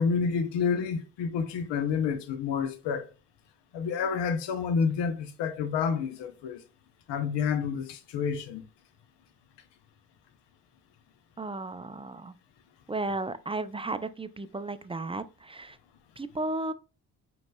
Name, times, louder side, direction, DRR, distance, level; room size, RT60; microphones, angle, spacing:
voice 1, 0.0-3.1 3.7-6.6 7.1-8.6, left 6 dB, 75° left, 0.8 m, -29 dB
voice 2, 11.4-12.3 12.9-15.7 16.2-16.7, right 2 dB, 15° right, 0.4 m, -34 dB
4.9 x 3.1 x 2.2 m
supercardioid pair, 50°, 43 cm